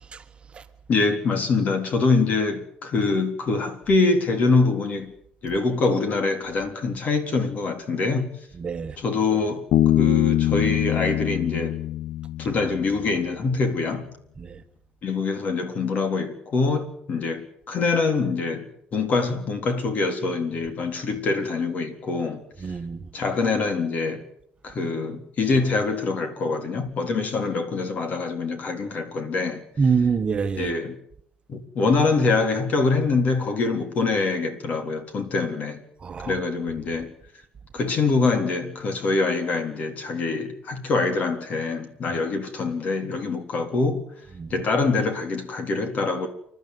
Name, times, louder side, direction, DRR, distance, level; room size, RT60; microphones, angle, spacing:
voice 1, 0.9-5.1 5.4-8.4 9.0-9.6 10.0-11.8 12.4-14.1 15.0-22.4 23.1-24.2 24.6-29.6 30.6-30.9 31.5-35.8 36.2-37.1 37.7-44.0 44.5-46.3, left 3 dB, 45° left, 3.8 m, -24 dB
voice 2, 8.6-9.0 14.4-14.6 22.6-23.0 29.8-30.7 36.0-36.3 44.4-44.5, right 5 dB, 30° right, 1.5 m, -25 dB
Bass guitar, 9.7-13.2, left 12 dB, 60° left, 0.9 m, -23 dB
29.0 x 12.5 x 9.6 m
cardioid pair, 135°, 4 cm